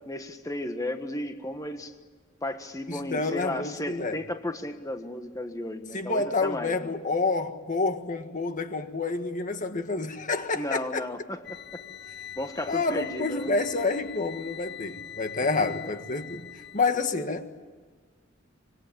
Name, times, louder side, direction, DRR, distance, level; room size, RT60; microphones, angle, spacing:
voice 1, 0.1-1.9 2.4-6.8 10.5-11.4 11.7-11.8 12.4-13.5 16.9-17.2, left 1 dB, 15° left, 1.5 m, -34 dB
voice 2, 2.9-4.2 5.9-11.1 12.7-17.5, left 3 dB, 40° left, 1.6 m, -28 dB
sound 1, 11.4-16.9, left 10 dB, 60° left, 1.0 m, -43 dB
25.5 x 23.5 x 8.8 m
head